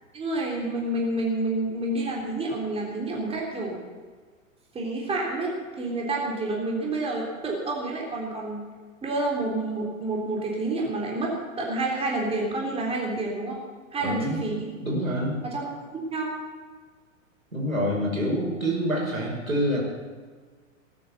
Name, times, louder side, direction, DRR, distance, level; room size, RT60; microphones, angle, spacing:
voice 1, 0.1-3.8 4.7-8.7 9.0-13.6 13.9-14.7 15.4-16.3, right 2 dB, 15° right, -2 dB, 3.7 m, -29 dB
voice 2, 14.0-14.5 14.8-15.4 17.5-19.8, equal, 80° right, -2 dB, 5.6 m, -26 dB
19.0 x 9.5 x 7.2 m, 1.5 s
figure-of-eight pair, 100°, 40 cm